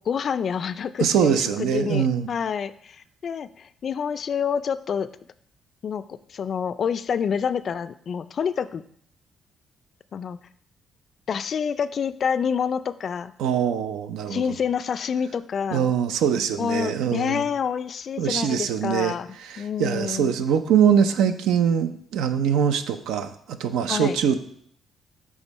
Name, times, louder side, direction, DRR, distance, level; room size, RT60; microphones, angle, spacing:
voice 1, 0.1-5.1 5.8-8.8 10.1-10.4 11.3-13.3 14.3-15.9 16.6-19.3 19.6-20.3 23.9-24.2, left 7 dB, 55° left, 14 dB, 0.3 m, -27 dB
voice 2, 1.0-2.3 13.4-14.6 15.7-17.5 18.2-19.1 19.4-23.3 23.6-24.4, right 8 dB, 90° right, 10 dB, 0.4 m, -23 dB
7.1 x 3.6 x 4.1 m, 0.65 s
cardioid pair, 90°, 0 cm